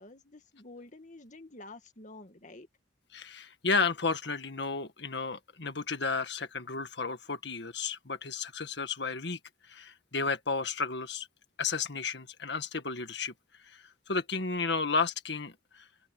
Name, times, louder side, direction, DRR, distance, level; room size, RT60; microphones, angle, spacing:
voice 1, 0.0-2.7, left 2 dB, 40° left, 1.9 m, -49 dB
voice 2, 3.1-9.4 9.7-11.3 11.6-13.3 13.7-15.8, left 4 dB, 65° left, 1.9 m, -32 dB
open air
head